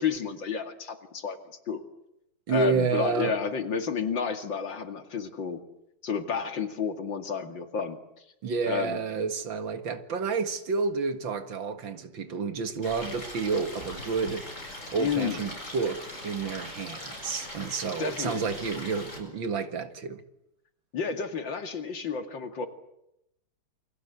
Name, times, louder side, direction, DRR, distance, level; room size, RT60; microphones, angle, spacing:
voice 1, 0.0-1.8 2.5-5.6 6.0-8.0 8.7-9.0 15.0-15.4 18.0-18.4 20.9-22.7, left 6 dB, 65° left, 3.0 m, -31 dB
voice 2, 2.5-3.3 8.4-14.5 14.9-20.2, right 5 dB, 70° right, 2.5 m, -30 dB
Stream, 12.8-19.2, left 1 dB, 35° left, 7.4 m, -41 dB
29.0 x 23.0 x 8.3 m
omnidirectional pair, 2.2 m